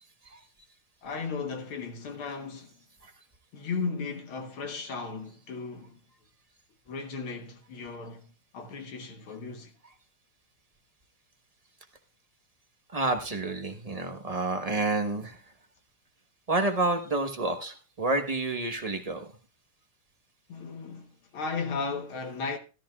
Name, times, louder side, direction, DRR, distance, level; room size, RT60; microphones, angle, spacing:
voice 1, 1.0-2.8 3.5-6.0 6.9-8.3 8.5-9.7 20.5-22.6, left 4 dB, 75° left, 2.1 m, -35 dB
voice 2, 12.9-15.4 16.5-19.3, right 2 dB, 25° right, 0.9 m, -29 dB
15.5 x 13.0 x 2.4 m
omnidirectional pair, 2.3 m